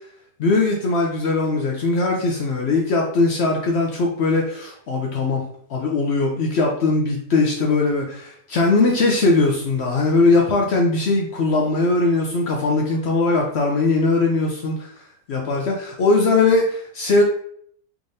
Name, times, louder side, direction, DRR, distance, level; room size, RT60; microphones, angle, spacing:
voice 1, 0.4-14.9 15.3-17.2, left 3 dB, 65° left, 0 dB, 0.7 m, -20 dB
3.5 x 3.2 x 2.6 m, 0.63 s
omnidirectional pair, 1.5 m